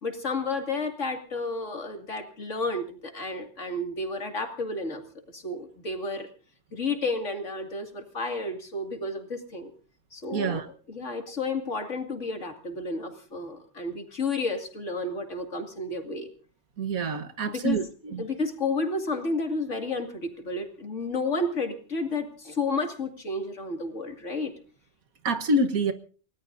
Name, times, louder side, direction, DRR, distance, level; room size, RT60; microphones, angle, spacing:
voice 1, 0.0-5.0 5.3-6.3 6.7-9.7 10.1-10.6 10.9-16.3 17.5-17.8 18.2-24.5, left 3 dB, 60° left, 4 dB, 2.7 m, -31 dB
voice 2, 10.3-10.7 16.8-18.2 25.3-25.9, right 2 dB, 85° right, 8 dB, 1.7 m, -26 dB
29.0 x 18.5 x 2.6 m, 0.38 s
omnidirectional pair, 1.4 m